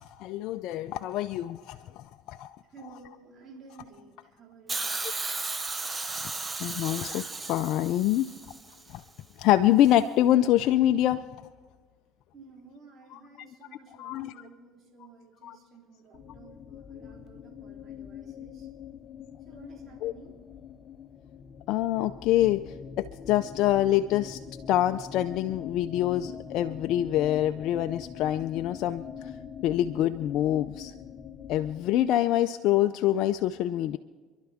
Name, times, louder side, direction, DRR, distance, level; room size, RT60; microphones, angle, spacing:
voice 1, 0.0-2.6 6.6-8.3 8.9-9.0 9.4-11.2 14.0-14.3 15.4-15.6 20.0-20.1 21.7-22.6 23.0-24.4 24.7-29.3 29.6-30.9 31.5-34.0, left 13 dB, 65° left, 8 dB, 0.5 m, -25 dB
voice 2, 2.6-5.2 12.3-18.7 19.4-20.4, right 4 dB, 45° right, -1 dB, 4.0 m, -53 dB
Hiss, 4.7-8.8 9.9-10.0, right 3 dB, 20° right, 0.9 m, -35 dB
sound 1, 16.1-32.0, left 7 dB, 40° left, 0.9 m, -43 dB
27.5 x 11.5 x 3.6 m, 1.4 s
supercardioid pair, 95°, 0 cm